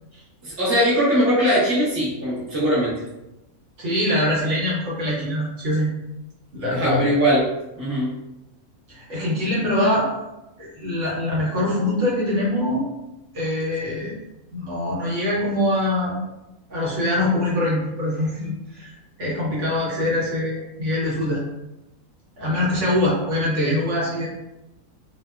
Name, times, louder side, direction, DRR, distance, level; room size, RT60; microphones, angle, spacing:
voice 1, 0.4-2.9 6.7-7.5 7.8-8.1, equal, 15° right, -8 dB, 0.5 m, -20 dB
voice 2, 3.8-5.9 6.5-7.1 8.9-10.1 10.6-12.9 13.3-14.1 14.5-16.2 16.7-18.9 19.2-21.4 22.4-24.3, left 1 dB, 60° right, -6 dB, 1.1 m, -23 dB
2.7 x 2.0 x 2.2 m, 0.95 s
omnidirectional pair, 1.5 m